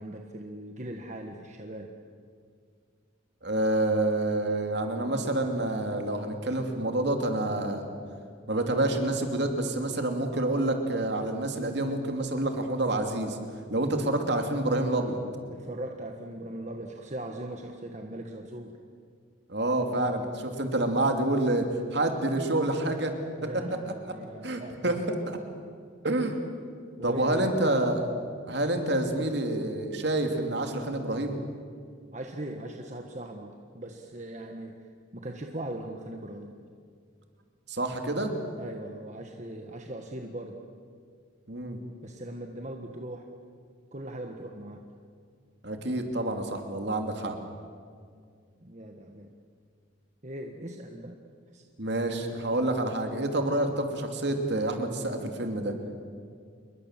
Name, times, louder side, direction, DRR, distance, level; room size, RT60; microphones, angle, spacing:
voice 1, 0.0-1.9 15.5-18.8 23.4-25.0 27.0-27.6 32.1-36.6 38.6-40.6 42.0-43.3 43.9-44.9 48.6-49.3 50.2-51.2 51.5-51.6 55.9-56.0, right 1 dB, 35° right, 3 dB, 1.5 m, -40 dB
voice 2, 3.4-7.8 8.5-13.4 13.7-15.2 19.5-23.1 24.4-25.0 26.0-26.4 27.0-28.1 28.5-31.4 37.7-38.3 41.5-41.8 45.6-47.4 51.8-55.7, right 1 dB, 55° right, 4 dB, 2.9 m, -28 dB
28.0 x 22.5 x 7.6 m, 2.2 s
head